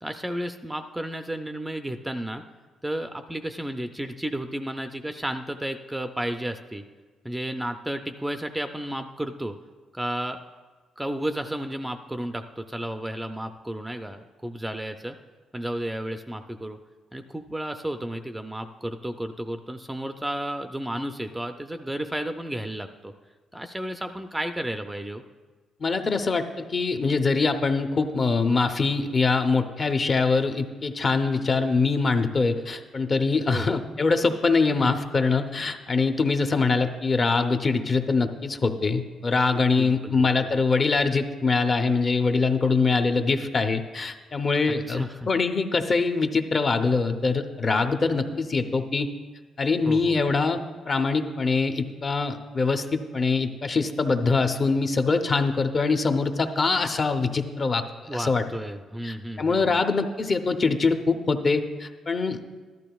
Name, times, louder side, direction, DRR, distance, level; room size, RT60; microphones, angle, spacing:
voice 1, 0.0-2.4 2.8-6.8 7.2-9.5 9.9-10.4 11.0-15.2 15.5-16.8 17.1-23.1 23.5-25.2 33.5-33.8 34.8-34.9 39.8-40.5 44.9-45.3 49.9-50.2 58.1-59.8, right 1 dB, 5° right, 7 dB, 0.4 m, -32 dB
voice 2, 25.8-49.1 49.6-50.6 50.9-57.8 58.1-58.4 59.0-62.4, left 4 dB, 35° left, 7 dB, 0.6 m, -23 dB
14.0 x 12.0 x 2.3 m, 1.4 s
cardioid pair, 120°, 0 cm